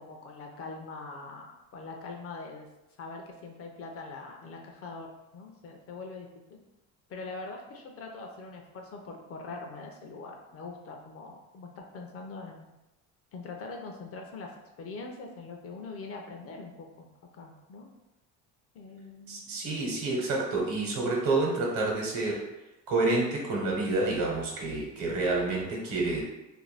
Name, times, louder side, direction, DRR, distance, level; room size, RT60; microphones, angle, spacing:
voice 1, 0.0-2.7 3.0-5.1 5.3-6.6 7.1-12.7 13.3-14.5 14.8-17.1 17.3-17.9 18.7-19.6, left 3 dB, 40° left, 2 dB, 0.4 m, -43 dB
voice 2, 19.3-22.4 22.9-26.2, right 2 dB, 65° right, -2 dB, 1.0 m, -28 dB
2.6 x 2.2 x 3.2 m, 0.97 s
cardioid pair, 120°, 36 cm